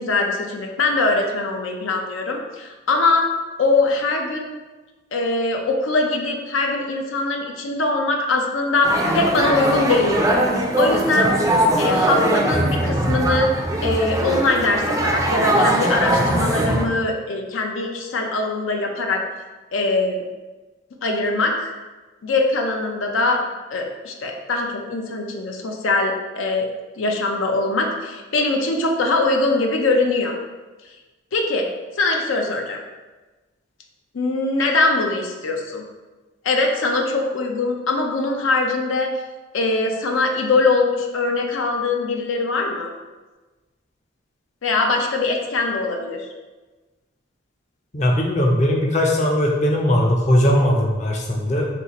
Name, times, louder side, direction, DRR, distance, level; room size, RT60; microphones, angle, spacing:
voice 1, 0.0-3.3 3.6-4.5 5.1-10.4 10.8-11.3 11.8-13.5 13.8-19.2 19.7-20.2 21.0-21.7 22.2-23.4 23.7-26.7 27.0-30.3 31.3-31.7 32.0-32.8 34.1-35.8 36.4-39.1 39.5-42.9 44.6-46.2, left 3 dB, 85° left, 2 dB, 0.5 m, -22 dB
sound 1, 8.8-16.9, right 1 dB, 15° right, 0.3 m, -20 dB
voice 2, 47.9-51.7, equal, 35° left, 0 dB, 0.5 m, -19 dB
4.2 x 2.4 x 4.0 m, 1.2 s
head